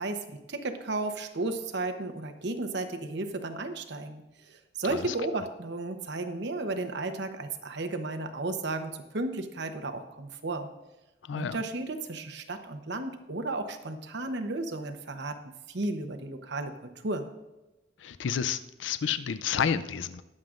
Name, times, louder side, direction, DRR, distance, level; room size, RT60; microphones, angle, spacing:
voice 1, 0.0-10.7 11.3-17.2, right 2 dB, 65° right, 7 dB, 0.9 m, -34 dB
voice 2, 11.2-11.6 18.0-20.2, left 7 dB, 75° left, 13 dB, 0.4 m, -30 dB
21.5 x 7.5 x 2.5 m, 1.0 s
head